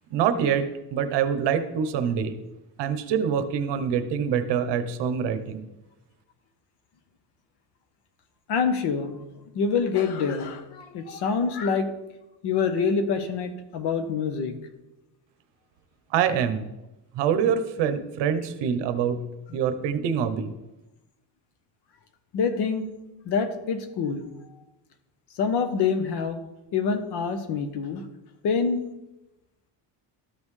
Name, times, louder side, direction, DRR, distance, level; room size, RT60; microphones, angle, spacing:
voice 1, 0.1-2.4 2.8-5.6 16.1-16.7 17.1-19.2 19.5-20.5, right 7 dB, 65° right, 9 dB, 0.9 m, -25 dB
voice 2, 8.5-9.2 9.5-11.9 12.4-14.5 22.3-22.9 23.2-24.3 25.4-26.4 26.7-28.0 28.4-28.9, left 5 dB, 60° left, 8 dB, 1.0 m, -26 dB
13.0 x 5.4 x 3.2 m, 0.97 s
cardioid pair, 150°, 46 cm